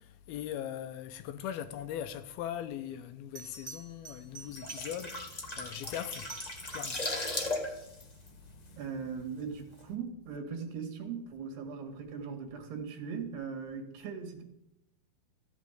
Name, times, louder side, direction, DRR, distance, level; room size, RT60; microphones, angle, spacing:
voice 1, 0.0-6.3 6.6-7.0, left 10 dB, 80° left, 2.6 m, -40 dB
Bell, 3.3-5.3 6.0-7.1 9.7-10.0, right 5 dB, 30° right, 1.3 m, -49 dB
sound 1, 4.4-9.2 9.5-9.7, left 2 dB, 50° left, 0.4 m, -37 dB
voice 2, 8.8-14.4, right 6 dB, 85° right, 4.1 m, -39 dB
14.5 x 7.5 x 9.2 m
omnidirectional pair, 4.6 m